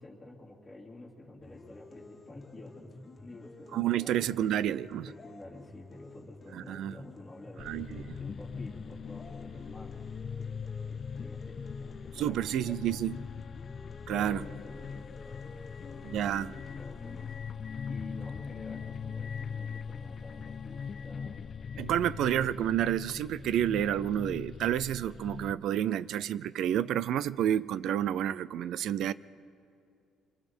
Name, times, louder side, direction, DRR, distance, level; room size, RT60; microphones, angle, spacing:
voice 1, 0.0-4.5 5.1-12.8 14.1-22.3, left 2 dB, 5° left, 2.9 m, -50 dB
sound 1, 1.4-17.4, left 2 dB, 25° left, 2.1 m, -52 dB
voice 2, 3.7-5.1 6.5-7.0 7.6-8.0 12.2-13.2 14.1-14.4 16.0-16.5 21.8-29.1, right 11 dB, 70° right, 0.5 m, -30 dB
sound 2, 7.6-25.5, left 6 dB, 40° left, 0.4 m, -41 dB
26.5 x 25.0 x 4.5 m
cardioid pair, 120°, 0 cm